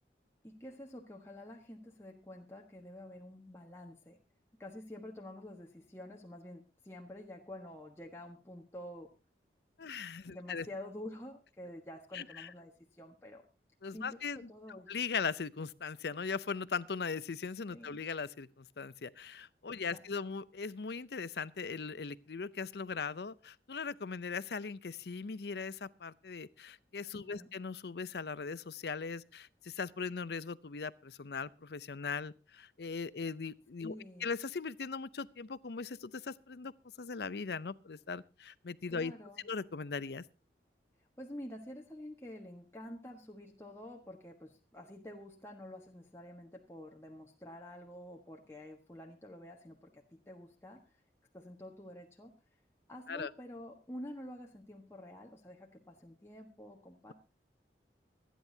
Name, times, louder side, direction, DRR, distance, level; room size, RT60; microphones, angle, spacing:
voice 1, 0.4-4.2 4.6-9.1 10.2-13.4 13.9-14.9 17.7-18.0 19.7-20.0 27.1-27.5 33.8-34.3 38.9-39.4 41.2-50.8 51.3-52.3 52.9-57.1, left 1 dB, 15° left, 1.4 m, -48 dB
voice 2, 9.8-10.7 12.1-12.5 13.8-14.5 14.9-36.7 37.0-39.1 39.4-40.3 53.1-53.3, left 5 dB, 65° left, 0.6 m, -39 dB
25.0 x 10.0 x 2.8 m
head